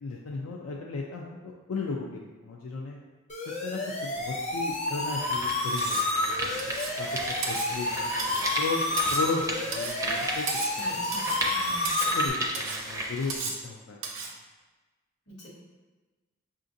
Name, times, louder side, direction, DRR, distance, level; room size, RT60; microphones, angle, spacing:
voice 1, 0.0-3.0 3.5-6.6 7.0-7.1 7.5-8.8 9.1-10.5 10.8-11.1 11.4-11.5 12.1-13.4 13.6-14.1, left 4 dB, 90° left, -2 dB, 0.4 m, -35 dB
sound 1, 3.3-12.3, left 2 dB, 35° left, 0.6 m, -30 dB
sound 2, 4.2-4.3 4.9-13.4, right 1 dB, 15° right, 0.4 m, -35 dB
Cutlery silverware, 5.8-6.1 6.6-7.0 7.4-7.7 8.2-8.5 9.0-9.3 9.7-10.0 10.5-10.8 11.1-11.4 11.8-12.2 12.5-12.8 13.3-13.6 14.0-14.3, right 4 dB, 65° right, 0.6 m, -34 dB
voice 2, 10.8-12.0 15.3-15.5, left 1 dB, 55° left, -4 dB, 1.0 m, -43 dB
5.7 x 2.5 x 2.6 m, 1.3 s
head